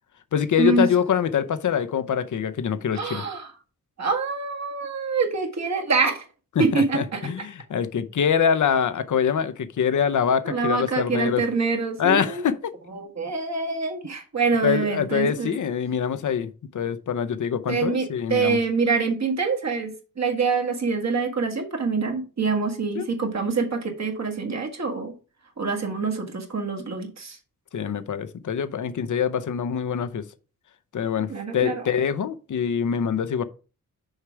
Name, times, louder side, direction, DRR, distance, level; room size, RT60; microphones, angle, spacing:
voice 1, 0.3-3.2 6.6-11.4 12.0-12.7 14.6-18.6 22.9-23.1 27.7-30.2 30.9-33.4, left 7 dB, 60° left, 0.7 m, -24 dB
voice 2, 2.9-3.5 4.0-6.3 6.6-7.2 10.4-12.5 12.9-15.5 17.7-25.1 25.6-27.4 31.3-31.9, right 4 dB, 50° right, 1.7 m, -25 dB
6.5 x 4.8 x 4.6 m
cardioid pair, 80°, 34 cm